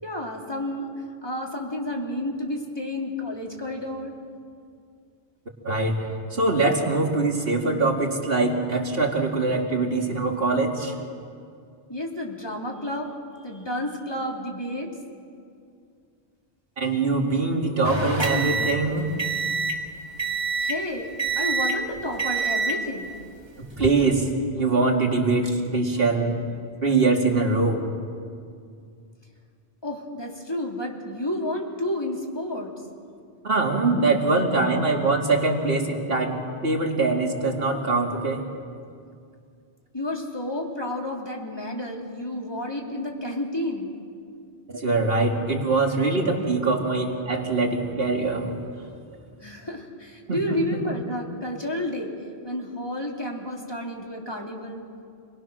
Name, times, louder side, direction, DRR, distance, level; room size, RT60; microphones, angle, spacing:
voice 1, 0.0-0.9 1.2-4.2 11.9-13.1 13.4-14.9 20.6-23.1 29.8-32.7 39.9-43.9 49.4-52.1 52.4-54.9, left 1 dB, 25° left, 0 dB, 2.9 m, -31 dB
voice 2, 5.6-6.0 6.3-10.9 16.8-19.1 23.8-24.3 24.5-26.4 26.8-27.8 33.4-38.5 44.7-48.5 50.3-50.4, right 3 dB, 65° right, 1 dB, 2.5 m, -23 dB
sound 1, 17.8-19.8 20.2-20.8 21.2-21.8 22.2-22.8 23.6-23.9, right 4 dB, 25° right, 1.7 m, -26 dB
27.5 x 20.5 x 6.3 m, 2.3 s
omnidirectional pair, 1.0 m